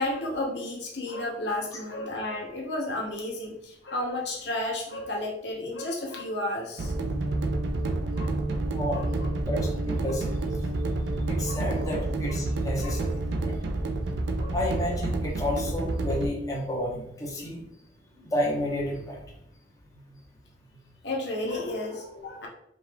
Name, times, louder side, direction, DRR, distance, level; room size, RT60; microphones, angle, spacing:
voice 1, 0.0-6.9 8.2-8.4 8.9-9.3 11.4-11.9 12.8-13.0 14.4-14.6 21.0-22.5, left 1 dB, 70° left, -1 dB, 1.0 m, -32 dB
sound 1, 6.8-16.3, right 2 dB, 80° right, 0.5 m, -29 dB
voice 2, 8.7-9.0 9.4-10.3 11.3-13.5 14.5-17.6 18.2-19.2, left 1 dB, 20° left, -4 dB, 1.0 m, -31 dB
5.1 x 2.5 x 3.3 m, 0.72 s
head